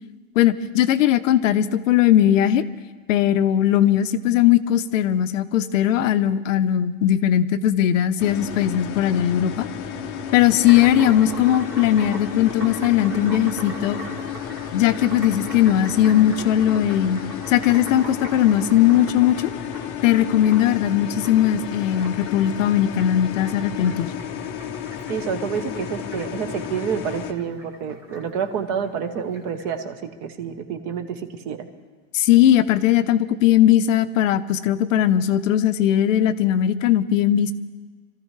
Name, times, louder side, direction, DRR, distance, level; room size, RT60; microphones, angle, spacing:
voice 1, 0.4-2.6 3.1-9.7 10.3-14.0 14.7-17.2 17.5-19.5 20.0-24.1 32.1-37.5, left 11 dB, 75° left, 11 dB, 0.8 m, -19 dB
sound 1, 8.2-27.3, left 8 dB, 25° left, 0.7 m, -32 dB
sound 2, 10.6-29.7, equal, 5° right, 0.4 m, -41 dB
voice 2, 25.1-29.9 30.2-31.2 31.5-31.6, right 7 dB, 30° right, 8 dB, 0.9 m, -28 dB
26.0 x 14.0 x 3.2 m, 1.4 s
supercardioid pair, 175°, 39 cm